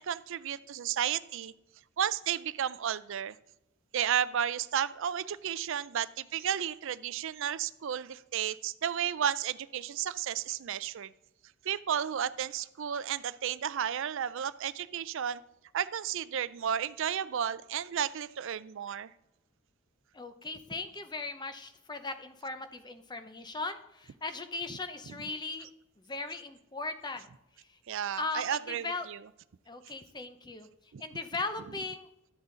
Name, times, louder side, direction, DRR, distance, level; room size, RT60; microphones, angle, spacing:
voice 1, 0.0-1.5 2.0-3.4 3.9-11.1 11.6-15.4 15.7-19.1 27.9-29.2 30.9-31.0, right 9 dB, 65° right, 16 dB, 0.4 m, -33 dB
voice 2, 20.1-25.7 26.0-27.3 27.7-27.8 28.2-29.1 29.7-30.7 31.0-32.1, left 3 dB, 20° left, 9 dB, 0.7 m, -38 dB
12.0 x 8.0 x 3.9 m, 0.89 s
head